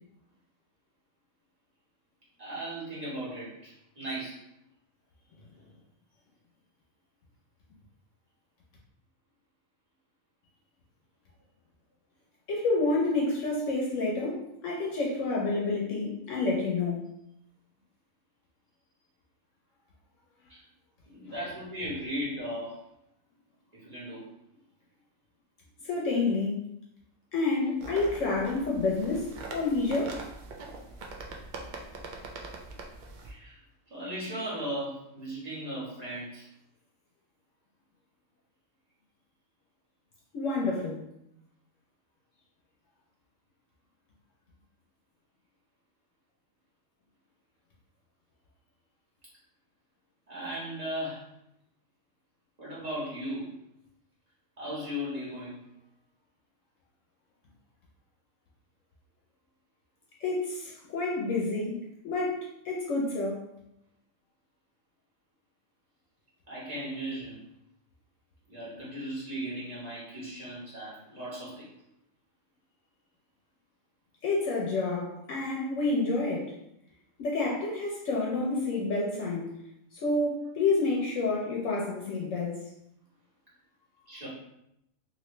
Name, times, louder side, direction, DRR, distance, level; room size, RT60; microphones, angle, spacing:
voice 1, 2.4-4.4 20.5-20.6 21.1-22.8 23.7-24.2 28.2-28.3 33.2-33.6 33.9-36.5 50.3-51.3 52.6-53.6 54.6-55.6 66.5-67.4 68.5-71.7 84.1-84.3, equal, 30° right, -9 dB, 1.5 m, -37 dB
voice 2, 12.5-17.1 25.8-26.6 27.3-30.2 40.3-41.0 60.2-61.8 62.0-62.4 62.6-63.5 74.2-76.5 77.2-79.5 79.9-82.6, left 3 dB, 70° left, -3 dB, 1.0 m, -29 dB
sound 1, 27.8-33.3, right 3 dB, 75° right, 0.4 m, -42 dB
3.0 x 2.8 x 3.1 m, 0.80 s
omnidirectional pair, 1.4 m